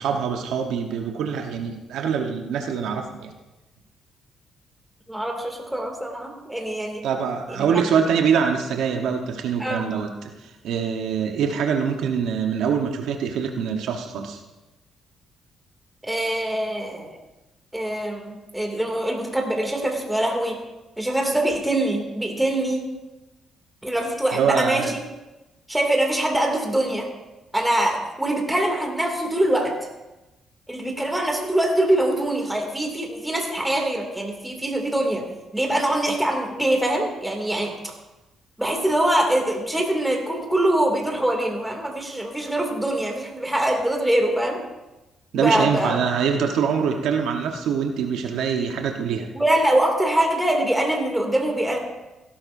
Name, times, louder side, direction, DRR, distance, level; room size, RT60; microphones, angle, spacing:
voice 1, 0.0-3.3 7.0-14.4 24.3-24.9 45.3-49.3, right 7 dB, 80° right, 3 dB, 1.1 m, -24 dB
voice 2, 5.1-7.0 7.5-7.7 9.6-9.8 16.0-17.2 17.7-20.6 21.0-22.9 23.8-24.8 25.7-27.1 27.5-29.8 30.7-35.2 35.5-37.7 38.6-44.6 45.3-46.0 49.3-51.8, right 1 dB, 5° right, 1 dB, 2.5 m, -23 dB
17.0 x 12.0 x 2.7 m, 1.0 s
cardioid pair, 90°, 0 cm